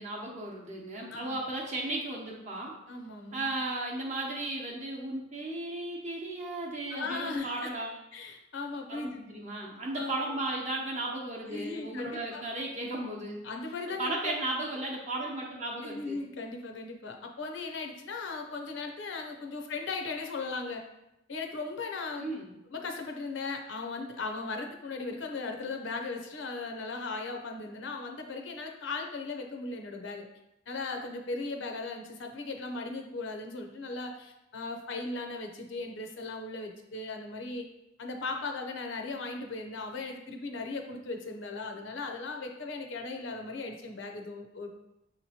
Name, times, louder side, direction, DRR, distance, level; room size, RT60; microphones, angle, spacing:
voice 1, 0.0-2.7 3.3-8.0 8.9-13.4 14.0-16.2 22.2-22.5, right 2 dB, 40° right, -2 dB, 0.7 m, -35 dB
voice 2, 2.9-3.5 6.9-7.7 8.1-9.2 9.9-10.2 11.5-12.4 13.4-14.4 15.8-20.8 21.3-22.3 22.7-30.3 30.7-37.7 38.0-44.7, left 3 dB, 80° left, 3 dB, 0.6 m, -37 dB
6.0 x 2.9 x 2.8 m, 0.87 s
head